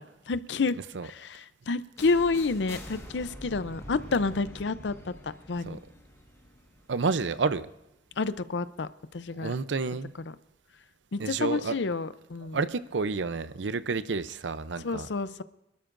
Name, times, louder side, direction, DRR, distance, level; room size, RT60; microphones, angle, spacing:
voice 1, 0.3-5.8 8.2-8.9 9.1-9.5 11.1-12.6 14.8-15.4, left 3 dB, 75° left, 0.6 m, -29 dB
sound 1, 2.0-7.8, equal, 15° left, 1.5 m, -46 dB
voice 2, 6.9-7.7 9.4-10.1 11.2-11.7 12.5-15.1, right 4 dB, 85° right, 0.6 m, -30 dB
27.0 x 12.5 x 2.6 m
head